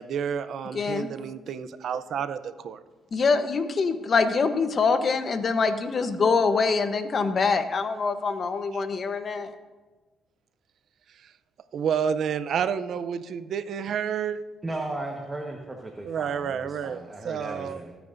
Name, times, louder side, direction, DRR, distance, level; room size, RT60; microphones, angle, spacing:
voice 1, 0.0-2.8 8.7-8.8 11.1-11.3 11.7-14.4 16.0-17.8, right 7 dB, 65° right, 12 dB, 0.6 m, -30 dB
voice 2, 0.7-1.1 3.1-9.5, left 4 dB, 45° left, 9 dB, 1.0 m, -24 dB
voice 3, 14.6-18.0, right 2 dB, 20° right, 1 dB, 1.4 m, -36 dB
22.5 x 9.1 x 2.7 m, 1.2 s
cardioid pair, 90°, 0 cm